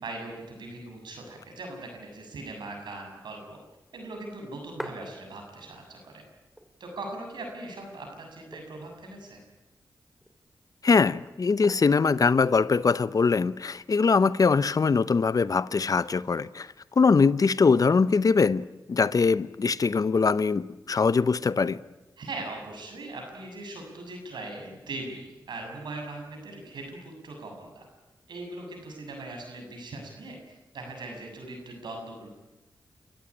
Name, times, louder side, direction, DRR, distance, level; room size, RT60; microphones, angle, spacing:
voice 1, 0.0-3.4 3.9-6.2 6.8-9.4 22.2-27.9 28.3-32.3, right 2 dB, 85° right, 7.2 m, -40 dB
sound 1, 4.8-5.8 6.1-6.2 6.4-7.2 7.7-7.8 8.3-9.1 9.8-10.4 11.6-12.2 13.3-13.9, equal, ahead, 3.1 m, -43 dB
voice 2, 10.8-16.7 17.0-21.8, left 4 dB, 55° left, 0.8 m, -22 dB
28.5 x 14.5 x 9.9 m
cardioid pair, 55°, 8 cm